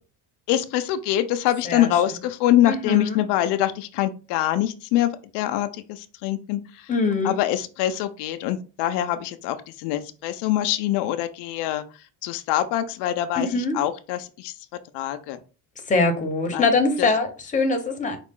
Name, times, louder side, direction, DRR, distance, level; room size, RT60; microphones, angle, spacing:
voice 1, 0.5-6.9 7.2-11.8 12.2-14.5 14.9-15.4 16.5-16.7 17.0-17.1, left 12 dB, 80° left, 10 dB, 0.5 m, -24 dB
voice 2, 2.6-3.2 6.9-7.4 13.4-13.8 15.8-18.2, left 3 dB, 20° left, 5 dB, 0.8 m, -23 dB
4.9 x 2.4 x 3.6 m, 0.34 s
cardioid pair, 145°, 40 cm